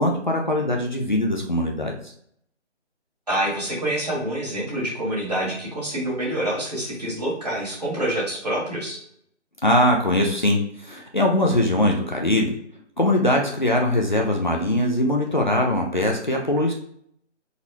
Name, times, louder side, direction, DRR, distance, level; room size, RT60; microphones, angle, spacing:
voice 1, 0.0-1.9 9.6-12.5 13.0-16.7, left 1 dB, 40° left, 0 dB, 0.6 m, -21 dB
voice 2, 3.3-9.0, right 1 dB, 35° right, -4 dB, 1.8 m, -27 dB
4.2 x 4.1 x 2.7 m, 0.67 s
figure-of-eight pair, 180°, 36 cm